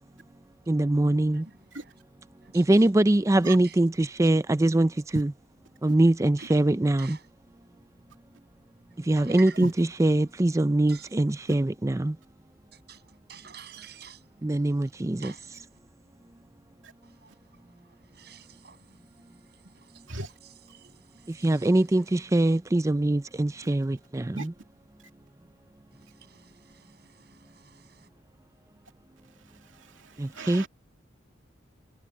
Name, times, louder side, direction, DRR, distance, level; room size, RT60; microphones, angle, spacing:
voice 1, 0.7-1.4 2.6-3.9 4.2-5.3 5.8-7.2 9.1-12.1 14.4-15.3 21.4-24.2 30.5-30.6, right 1 dB, 15° right, 0.4 m, -23 dB
voice 2, 1.3-2.0 2.4-3.0 3.6-3.9 6.4-6.7 7.0-7.3 8.9-9.7 10.2-10.4 10.9-11.3 12.7-15.8 17.0-22.6 25.9-28.1, right 7 dB, 55° right, 7.6 m, -51 dB
voice 3, 29.6-30.7, right 2 dB, 85° right, 2.6 m, -38 dB
head